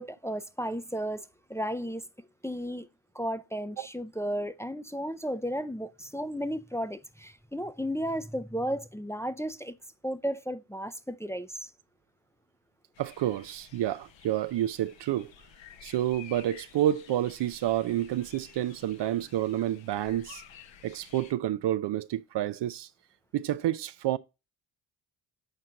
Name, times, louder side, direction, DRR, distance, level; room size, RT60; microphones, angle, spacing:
voice 1, 0.0-2.0 2.4-2.9 3.1-9.7 10.0-11.7, equal, 5° left, 0.6 m, -34 dB
sound 1, 13.0-21.3, left 8 dB, 65° left, 1.1 m, -52 dB
voice 2, 13.0-15.3 15.8-20.4 20.8-22.9 23.3-24.2, right 12 dB, 60° right, 0.6 m, -29 dB
7.8 x 4.4 x 3.8 m
supercardioid pair, 60°, 49 cm